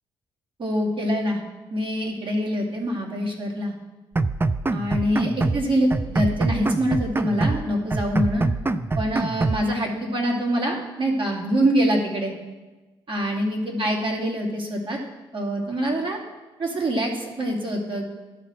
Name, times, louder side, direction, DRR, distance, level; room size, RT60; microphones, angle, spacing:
voice 1, 0.6-1.4 1.7-3.7 4.7-8.5 8.9-12.3 13.1-15.0 15.3-16.2 16.6-18.2, equal, 45° right, -2 dB, 2.5 m, -25 dB
sound 1, 4.2-5.6 5.9-7.6 7.9-9.6, right 3 dB, 20° right, 0.5 m, -24 dB
12.0 x 4.2 x 7.5 m, 1.2 s
hypercardioid pair, 45°, 13 cm